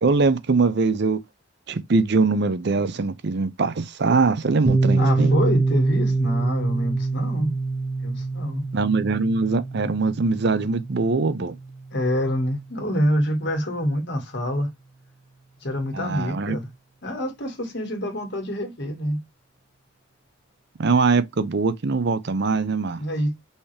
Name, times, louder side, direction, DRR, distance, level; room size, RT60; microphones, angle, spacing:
voice 1, 0.0-1.2 1.7-5.3 8.7-11.5 15.9-16.6 20.8-23.0, right 4 dB, 60° right, 0.6 m, -22 dB
Piano, 4.7-12.1, right 3 dB, 25° right, 1.0 m, -25 dB
voice 2, 4.9-7.6 8.0-8.7 11.9-14.7 15.6-16.7 17.0-19.2 23.0-23.4, equal, 60° left, 1.8 m, -26 dB
5.5 x 2.9 x 3.3 m
head